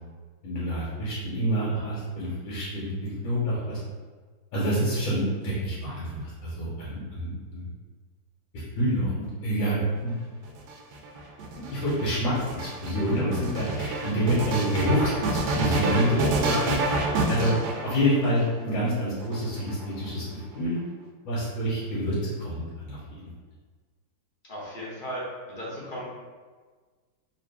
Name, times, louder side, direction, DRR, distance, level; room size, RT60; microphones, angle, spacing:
voice 1, 0.4-3.8 4.5-7.7 8.5-10.2 11.7-17.0 17.3-17.5 17.8-20.8 21.2-23.3, equal, 80° left, -9 dB, 2.0 m, -27 dB
sound 1, 10.5-18.4 19.2-20.1, right 2 dB, 70° right, 1.0 m, -28 dB
voice 2, 24.5-25.2 25.5-26.0, equal, 45° left, -6 dB, 0.6 m, -36 dB
3.9 x 2.7 x 3.3 m, 1.4 s
omnidirectional pair, 2.0 m